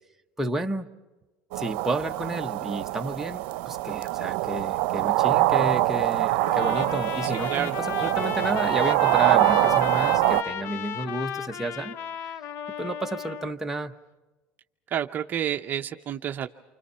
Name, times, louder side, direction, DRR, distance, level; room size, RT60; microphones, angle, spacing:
voice 1, 0.4-0.9 1.6-12.0 12.8-13.9, right 1 dB, 5° right, 3 dB, 1.1 m, -31 dB
sound 1, 1.5-10.4, right 17 dB, 80° right, 0.7 m, -24 dB
Trumpet, 6.4-13.6, left 9 dB, 55° left, 0.7 m, -34 dB
voice 2, 7.2-7.8 14.9-16.5, right 10 dB, 35° right, 6 dB, 0.7 m, -30 dB
29.5 x 25.5 x 5.6 m, 1.2 s
supercardioid pair, 125°, 5 cm